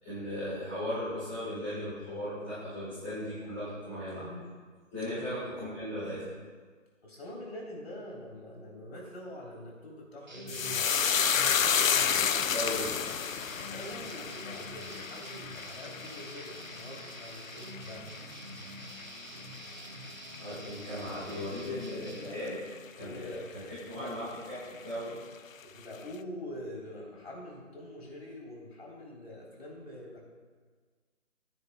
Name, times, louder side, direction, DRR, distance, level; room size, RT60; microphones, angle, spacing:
voice 1, 0.0-4.4 4.9-6.2 12.5-12.9 20.4-22.6 22.9-24.6 24.8-25.1, left 1 dB, 10° left, -15 dB, 1.7 m, -37 dB
voice 2, 7.0-11.0 13.6-18.1 23.0-24.2 25.6-30.2, left 1 dB, 50° left, -3 dB, 3.3 m, -45 dB
sound 1, 10.3-22.3, right 1 dB, 35° right, 0.8 m, -46 dB
sound 2, 10.5-19.1 19.4-20.1 20.3-20.6, left 7 dB, 90° left, 0.6 m, -31 dB
15.5 x 10.0 x 2.2 m, 1.5 s
hypercardioid pair, 175°, 39 cm